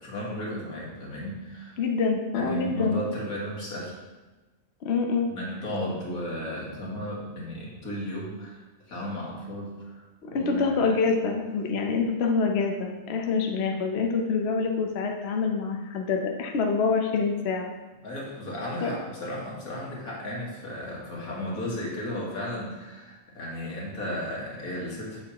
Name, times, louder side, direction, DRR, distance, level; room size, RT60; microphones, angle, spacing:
voice 1, 0.0-1.8 2.3-3.9 5.3-8.6 8.9-10.9 18.0-25.2, left 1 dB, 85° left, -4 dB, 2.1 m, -34 dB
voice 2, 1.8-3.0 4.8-5.3 10.3-17.7 18.8-19.0, left 4 dB, 55° left, 2 dB, 0.9 m, -26 dB
7.2 x 6.9 x 2.9 m, 1.2 s
omnidirectional pair, 1.5 m